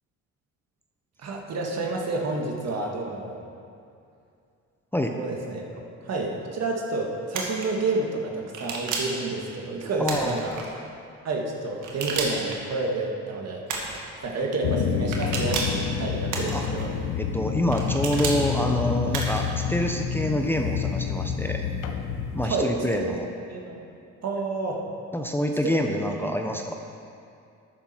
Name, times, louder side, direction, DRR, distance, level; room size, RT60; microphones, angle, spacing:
voice 1, 1.2-3.3 5.1-10.9 11.2-13.6 14.2-16.9 22.4-23.2 23.5-23.8 24.2-24.8 25.6-25.7 26.2-26.3, right 3 dB, 55° right, 0 dB, 1.9 m, -29 dB
sound 1, 7.3-7.7 8.5-9.2 10.0-10.7 11.8-12.6 13.7-14.0 15.1-15.8 16.3-16.9 17.7-18.4 19.1-19.5, right 4 dB, 90° right, 1.8 m, -31 dB
voice 2, 10.0-10.3 16.5-16.6 17.2-21.6 22.3-23.3 25.1-26.7, equal, 5° left, 2 dB, 0.7 m, -26 dB
sound 2, 14.6-22.5, left 7 dB, 85° left, 0.9 m, -28 dB
12.0 x 9.7 x 4.5 m, 2.5 s
cardioid pair, 90°, 30 cm